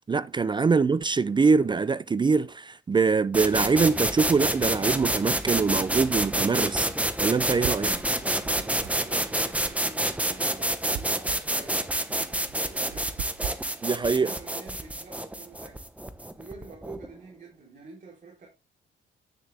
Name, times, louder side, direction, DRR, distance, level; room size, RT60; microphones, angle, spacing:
voice 1, 0.1-6.9 7.2-8.0 13.8-14.3, right 4 dB, 25° right, 0.4 m, -23 dB
sound 1, 3.3-17.1, right 1 dB, 5° right, 1.0 m, -28 dB
sound 2, 7.6-15.8, right 9 dB, 70° right, 0.8 m, -43 dB
voice 2, 8.2-11.9 12.2-13.2 14.0-15.8 16.4-18.5, right 3 dB, 40° right, 3.6 m, -47 dB
9.3 x 6.6 x 3.4 m
cardioid pair, 90°, 20 cm